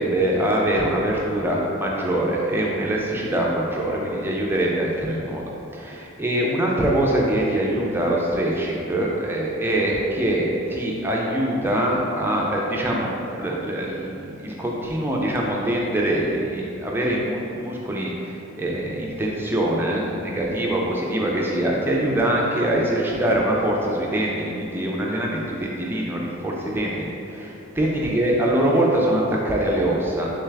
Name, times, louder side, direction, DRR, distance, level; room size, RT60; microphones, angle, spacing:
voice 1, 0.0-5.4 5.7-30.3, right 1 dB, 10° right, -3 dB, 0.3 m, -23 dB
3.4 x 3.2 x 3.3 m, 2.8 s
head